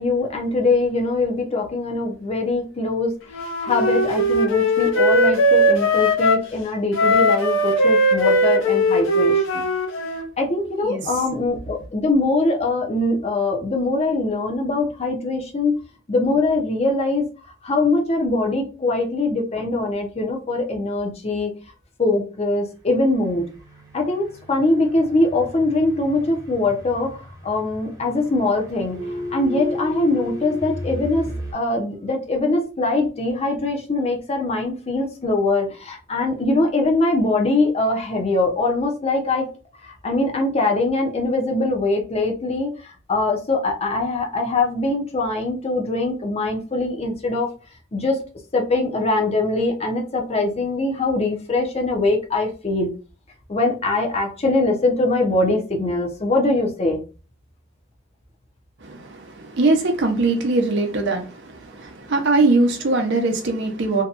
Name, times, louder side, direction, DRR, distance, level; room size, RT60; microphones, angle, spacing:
voice 1, 0.0-3.1 3.6-9.7 10.4-15.7 16.1-17.3 17.6-21.5 22.0-23.5 23.9-27.2 27.4-29.0 29.3-39.5 39.8-42.7 43.1-47.5 47.9-48.2 48.5-52.9 53.5-57.0, left 2 dB, 30° left, 0.6 m, -22 dB
Wind instrument woodwind instrument, 3.3-6.5 6.9-10.3, equal, 70° left, 0.6 m, -19 dB
sound 1, 23.3-31.5, left 1 dB, 20° right, 0.7 m, -34 dB
voice 2, 58.9-61.3 61.5-64.0, right 3 dB, 60° right, 0.6 m, -21 dB
2.7 x 2.2 x 2.4 m
head